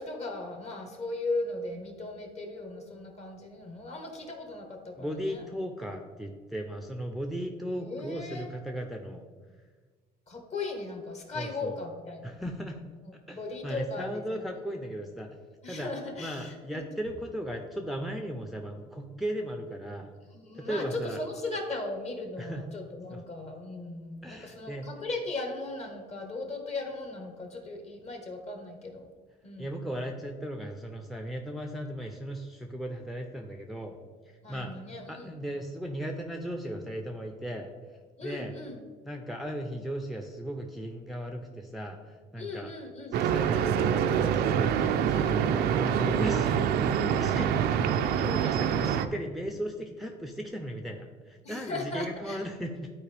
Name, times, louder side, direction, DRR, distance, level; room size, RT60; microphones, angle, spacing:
voice 1, 0.0-5.4 7.8-8.5 10.3-12.4 13.3-14.2 15.6-16.8 20.3-29.0 29.4-29.7 34.4-35.3 38.2-38.8 42.4-43.2 45.1-45.4 46.2-46.4 47.4-47.8 48.9-49.0 51.4-52.4, left 2 dB, 40° left, 3 dB, 1.5 m, -37 dB
voice 2, 5.0-9.2 11.3-11.7 12.2-12.8 13.3-15.3 15.7-15.9 16.2-20.1 20.6-21.2 22.4-22.6 23.1-23.2 24.2-24.9 29.6-34.0 34.5-34.7 35.1-37.7 38.2-38.5 39.0-42.7 43.1-46.6 47.0-52.9, equal, ahead, 3 dB, 0.6 m, -37 dB
sound 1, 43.1-49.1, right 8 dB, 75° right, 0.5 m, -25 dB
11.5 x 4.4 x 3.4 m, 1.4 s
cardioid pair, 110°, 17 cm